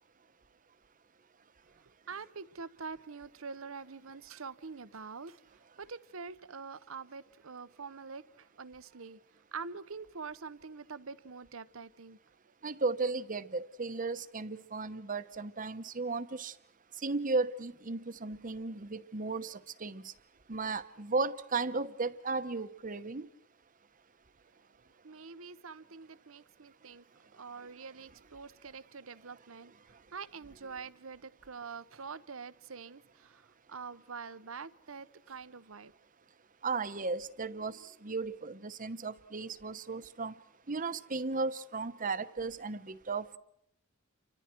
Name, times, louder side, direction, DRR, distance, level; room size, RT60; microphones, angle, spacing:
voice 1, 2.1-5.4 5.8-9.2 9.5-12.2 25.0-27.1 27.3-29.7 30.1-35.9, right 5 dB, 80° right, 1.0 m, -45 dB
voice 2, 12.6-16.5 17.0-20.0 20.5-23.3 36.6-40.3 40.7-43.4, right 3 dB, 40° right, 1.0 m, -35 dB
29.5 x 25.0 x 4.6 m
head